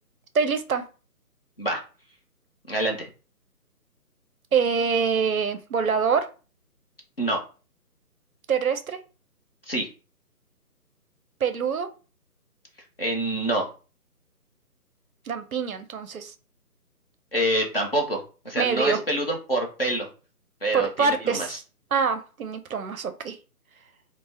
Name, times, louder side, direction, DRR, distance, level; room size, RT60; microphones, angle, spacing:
voice 1, 0.3-0.8 4.5-6.3 8.5-9.0 11.4-11.9 15.3-16.3 18.6-19.0 20.7-21.5 21.9-23.4, right 6 dB, 65° right, 10 dB, 0.5 m, -25 dB
voice 2, 2.7-3.1 7.2-7.4 9.7-9.9 13.0-13.7 17.3-20.1 20.6-21.6, right 1 dB, 40° left, 1 dB, 0.5 m, -26 dB
2.5 x 2.0 x 3.3 m, 0.34 s
figure-of-eight pair, 160°, 47 cm